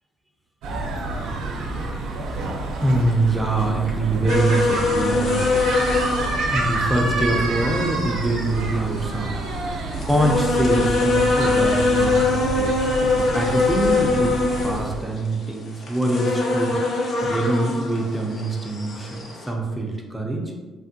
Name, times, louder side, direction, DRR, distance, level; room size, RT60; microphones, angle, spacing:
sound 1, 0.6-15.0, right 2 dB, 85° right, 0.5 m, -28 dB
voice 1, 2.8-5.5 6.5-9.4 9.7-20.6, right 2 dB, 5° right, 0 dB, 0.5 m, -24 dB
sound 2, 4.3-19.5, left 3 dB, 55° left, 0.6 m, -23 dB
3.4 x 2.1 x 2.6 m, 1.3 s
cardioid pair, 130°, 0 cm